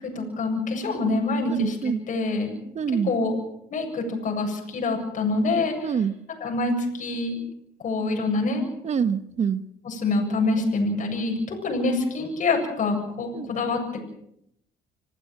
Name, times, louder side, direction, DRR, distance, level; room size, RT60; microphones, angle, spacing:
voice 1, 0.0-2.6 2.9-3.4 3.7-6.0 6.4-7.4 7.8-8.6 9.8-13.8, left 3 dB, 50° left, 2 dB, 7.8 m, -26 dB
voice 2, 1.5-2.0 2.7-3.1 5.8-6.1 8.8-9.6 13.3-13.5, right 7 dB, 40° right, 11 dB, 1.5 m, -25 dB
27.0 x 15.5 x 7.7 m, 0.77 s
cardioid pair, 110°, 17 cm